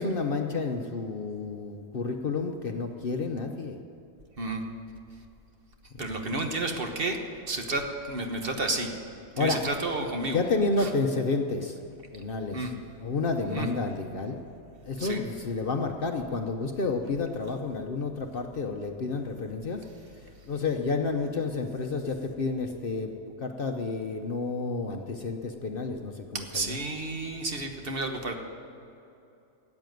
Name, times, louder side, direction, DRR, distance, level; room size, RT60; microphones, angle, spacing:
voice 1, 0.0-3.8 6.0-6.3 9.4-9.6 10.3-11.8 12.1-12.7 13.0-14.4 14.8-19.8 20.5-23.1 23.4-26.8, left 3 dB, 50° left, 4 dB, 0.9 m, -30 dB
voice 2, 6.0-7.2 7.5-8.9 9.4-10.4 10.8-10.9 12.5-12.7 13.5-13.7 15.0-15.2 26.3-28.3, right 2 dB, 45° right, 4 dB, 1.4 m, -31 dB
14.0 x 8.4 x 9.3 m, 2.7 s
omnidirectional pair, 1.4 m